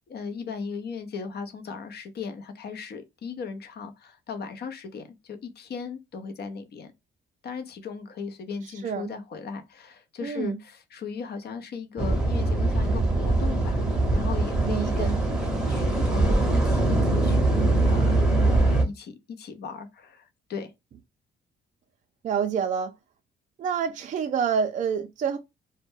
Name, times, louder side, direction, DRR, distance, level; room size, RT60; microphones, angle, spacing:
voice 1, 0.1-6.9 7.4-13.8 14.1-17.4 17.8-20.7, left 5 dB, 55° left, 0.6 m, -37 dB
voice 2, 10.2-10.6 14.7-15.1 22.2-22.9 23.6-25.4, right 7 dB, 40° right, 0.4 m, -27 dB
sound 1, 12.0-18.8, right 2 dB, 5° right, 0.7 m, -22 dB
2.1 x 2.1 x 3.1 m
cardioid pair, 90°, 20 cm